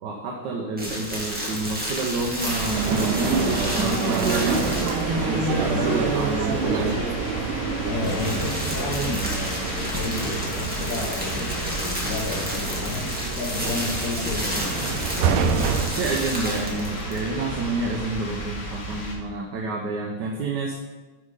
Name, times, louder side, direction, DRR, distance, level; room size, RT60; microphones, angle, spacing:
voice 1, 0.0-4.9 5.3-7.0 15.8-20.8, right 3 dB, 65° right, 0 dB, 1.3 m, -29 dB
sound 1, 0.8-5.3 7.7-17.3, equal, 5° right, 1.2 m, -31 dB
sound 2, 2.4-19.1, equal, 70° left, 2.4 m, -34 dB
sound 3, 2.7-18.1, right 5 dB, 85° right, 1.5 m, -28 dB
voice 2, 7.9-14.8, left 3 dB, 55° left, -2 dB, 1.6 m, -32 dB
6.4 x 5.7 x 4.8 m, 1.3 s
omnidirectional pair, 2.3 m